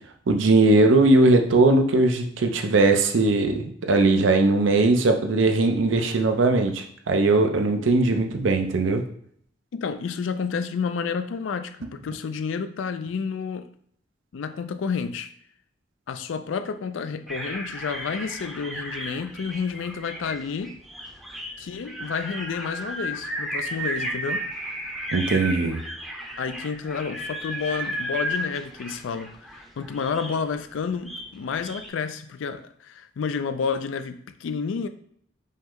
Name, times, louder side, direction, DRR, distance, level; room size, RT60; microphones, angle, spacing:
voice 1, 0.3-9.0 25.1-25.8, right 2 dB, 90° right, 0.6 m, -19 dB
voice 2, 9.7-13.7 14.3-15.3 16.1-20.8 21.6-24.5 26.4-34.9, left 5 dB, 90° left, 0.4 m, -30 dB
sound 1, 17.3-31.9, equal, ahead, 0.5 m, -34 dB
5.3 x 2.1 x 3.7 m
head